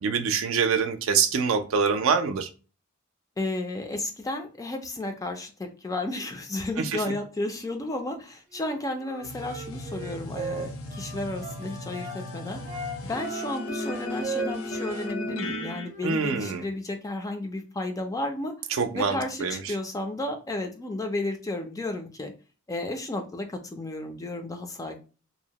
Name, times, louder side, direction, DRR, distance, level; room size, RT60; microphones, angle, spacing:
voice 1, 0.0-2.5 16.0-16.6 18.7-19.6, right 6 dB, 70° right, 8 dB, 0.4 m, -25 dB
voice 2, 3.4-12.6 13.0-18.5 18.9-22.3 22.7-25.0, left 2 dB, 15° left, 5 dB, 0.3 m, -33 dB
Wind instrument woodwind instrument, 8.5-12.2 12.6-15.1 15.3-16.7, right 4 dB, 35° right, 0.7 m, -37 dB
sound 1, 9.2-15.9, left 1 dB, 80° left, 0.5 m, -35 dB
2.7 x 2.0 x 2.8 m, 0.34 s
head